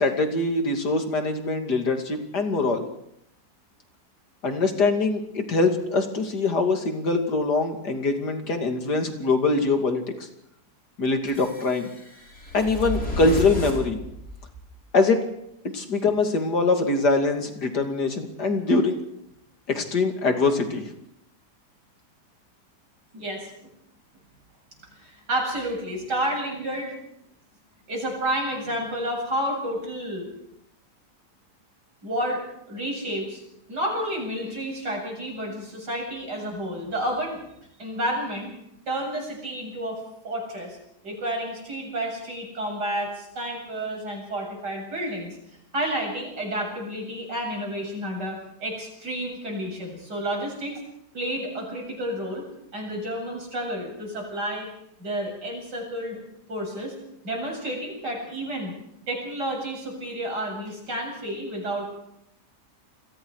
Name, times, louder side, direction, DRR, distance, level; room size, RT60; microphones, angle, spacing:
voice 1, 0.0-2.8 4.4-10.0 11.0-11.9 12.5-14.0 14.9-15.2 15.7-19.0 19.7-20.9, left 3 dB, 75° left, 5 dB, 3.2 m, -23 dB
sound 1, 11.3-14.7, left 1 dB, 55° left, 5.9 m, -33 dB
voice 2, 23.1-23.7 25.0-27.0 27.9-30.3 32.0-33.4 33.7-37.4 37.8-38.5 38.9-40.8 41.0-45.4 45.7-50.8 51.1-52.4 52.7-54.7 55.0-56.2 56.5-56.9 57.2-58.7 59.1-61.9, right 1 dB, 90° right, 0 dB, 8.6 m, -30 dB
29.5 x 22.0 x 4.9 m, 0.77 s
omnidirectional pair, 1.8 m